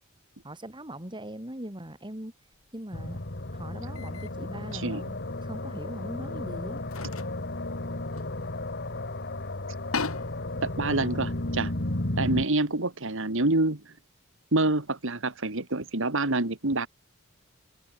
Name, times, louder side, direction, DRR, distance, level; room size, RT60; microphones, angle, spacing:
voice 1, 0.4-2.3 2.7-3.2 3.5-6.8, right 1 dB, 25° right, 4.5 m, -40 dB
sound 1, 2.5-2.7 3.9-4.3 4.7-4.8 6.1-6.2 6.8-9.0 9.3-9.4 9.7-12.1, left 4 dB, 85° left, 1.9 m, -39 dB
sound 2, 2.9-12.4, left 1 dB, 50° left, 2.4 m, -33 dB
voice 2, 4.7-5.0 10.6-11.7 12.2-13.9 14.5-16.9, right 2 dB, 65° right, 2.4 m, -27 dB
head